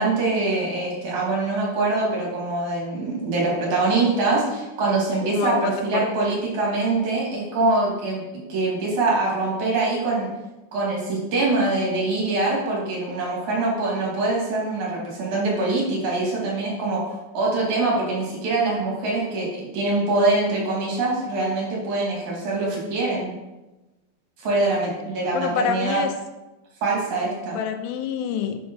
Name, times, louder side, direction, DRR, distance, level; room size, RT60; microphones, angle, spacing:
voice 1, 0.0-8.2 8.5-10.3 10.7-17.0 17.3-19.5 19.7-23.3 24.4-26.0 26.8-27.6, right 2 dB, 45° right, -4 dB, 3.1 m, -24 dB
voice 2, 5.2-6.1 24.5-24.7 25.3-26.1 27.5-28.6, left 8 dB, 90° left, 7 dB, 3.3 m, -27 dB
6.9 x 6.5 x 5.5 m, 1.1 s
omnidirectional pair, 5.5 m